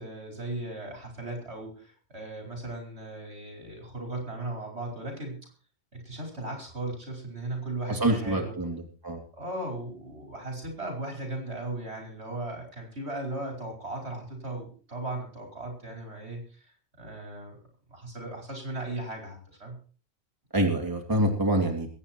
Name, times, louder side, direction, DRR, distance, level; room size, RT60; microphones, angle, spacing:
voice 1, 0.0-5.5 5.9-8.5 9.3-17.6 17.9-19.8, right 2 dB, 75° right, 1 dB, 5.3 m, -37 dB
voice 2, 7.9-9.2 20.5-21.9, right 1 dB, 20° right, 2 dB, 2.7 m, -26 dB
22.5 x 8.9 x 4.5 m, 0.41 s
omnidirectional pair, 1.1 m